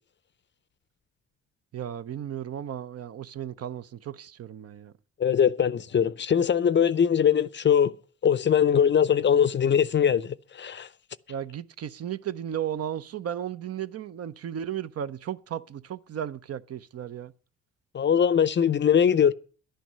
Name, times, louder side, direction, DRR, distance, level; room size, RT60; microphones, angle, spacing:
voice 1, 1.7-4.9 11.3-17.3, right 10 dB, 55° right, 0.7 m, -35 dB
voice 2, 5.2-7.9 8.2-10.9 17.9-19.3, left 8 dB, 40° left, 0.6 m, -21 dB
11.5 x 9.2 x 6.7 m
cardioid pair, 90°, 30 cm